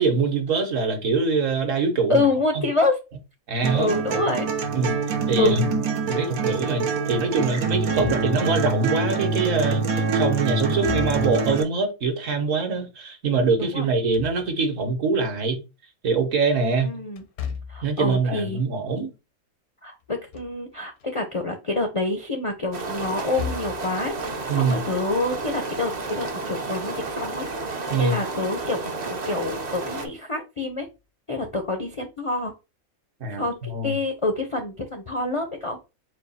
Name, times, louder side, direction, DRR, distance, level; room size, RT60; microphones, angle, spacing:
voice 1, 0.0-2.3 2.5-2.7 3.5-4.0 4.7-5.0 5.3-5.8 6.1-15.6 16.0-16.9 17.8-19.1 24.5-24.8 27.9-28.2 33.2-34.0, right 4 dB, 65° right, 1.3 m, -24 dB
voice 2, 2.1-3.0 3.7-4.5 5.4-5.6 8.0-8.1 13.6-13.9 16.8-17.2 17.7-18.6 19.8-27.5 28.0-28.8 29.1-30.9 31.3-32.5 33.4-35.8, left 2 dB, 50° left, 0.4 m, -27 dB
sound 1, 3.6-11.6, right 4 dB, 85° right, 1.2 m, -25 dB
Slam / Thump thud, 7.7-8.6 10.6-11.5 13.8-14.8 17.2-18.0 20.0-20.6 21.0-21.1 23.1-23.9, left 7 dB, 85° left, 1.2 m, -36 dB
sound 2, 22.7-30.1, right 3 dB, 45° right, 0.6 m, -31 dB
4.2 x 2.4 x 4.0 m
omnidirectional pair, 1.5 m